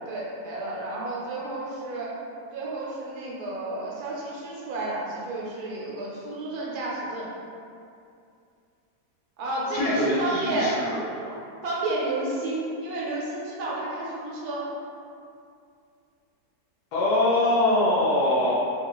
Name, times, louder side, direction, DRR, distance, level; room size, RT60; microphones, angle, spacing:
voice 1, 0.1-2.1 2.5-7.3 9.4-10.8 11.6-14.6, right 2 dB, 70° right, -5 dB, 1.2 m, -31 dB
voice 2, 9.7-11.4 16.9-18.5, left 1 dB, 80° left, -7 dB, 1.2 m, -23 dB
2.9 x 2.4 x 2.9 m, 2.5 s
omnidirectional pair, 1.7 m